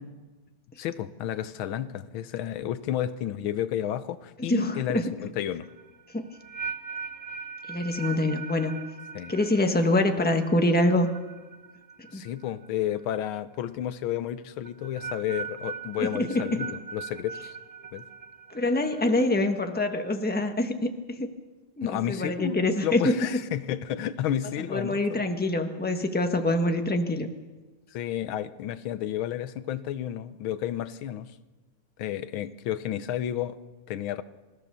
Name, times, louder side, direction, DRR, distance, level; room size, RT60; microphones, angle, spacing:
voice 1, 0.8-5.7 9.1-9.3 12.1-17.6 17.9-18.0 21.8-22.5 22.8-25.2 27.9-31.3 32.0-33.6 33.9-34.2, left 11 dB, 85° left, 13 dB, 1.7 m, -31 dB
voice 2, 4.5-5.0 6.1-6.2 7.7-8.8 9.3-11.1 12.1-12.2 16.0-16.6 18.5-20.7 21.1-21.3 21.8-23.1 24.7-27.3, left 1 dB, 5° left, 5 dB, 1.1 m, -25 dB
sound 1, 5.6-12.7 13.0-13.4 14.6-19.3, right 6 dB, 25° right, 1.0 m, -40 dB
27.5 x 15.0 x 6.9 m, 1.3 s
omnidirectional pair, 2.2 m